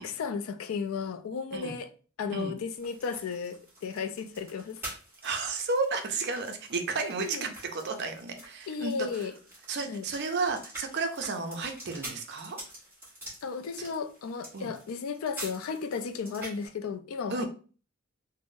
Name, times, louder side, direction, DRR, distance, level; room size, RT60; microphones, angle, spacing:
voice 1, 0.0-1.9 2.2-4.8 7.2-7.5 8.7-9.3 9.9-10.0 13.4-17.5, left 5 dB, 85° left, 0.4 m, -34 dB
sound 1, 2.8-16.7, right 1 dB, 10° right, 1.4 m, -47 dB
voice 2, 5.2-8.9 9.7-12.6 13.8-13.9 14.5-14.7 17.3-17.5, right 4 dB, 55° right, 0.5 m, -32 dB
3.6 x 2.0 x 2.5 m
head